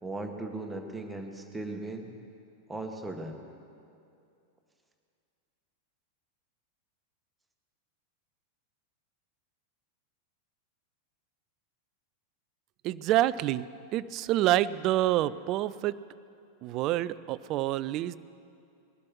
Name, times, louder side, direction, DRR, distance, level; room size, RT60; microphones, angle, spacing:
voice 1, 0.0-2.1 2.7-3.4, right 2 dB, 10° right, 3 dB, 1.6 m, -37 dB
voice 2, 12.8-13.7 13.9-16.0 16.6-18.1, right 14 dB, 40° right, 18 dB, 0.4 m, -27 dB
20.0 x 12.0 x 6.1 m, 2.5 s
figure-of-eight pair, 90°, 0 cm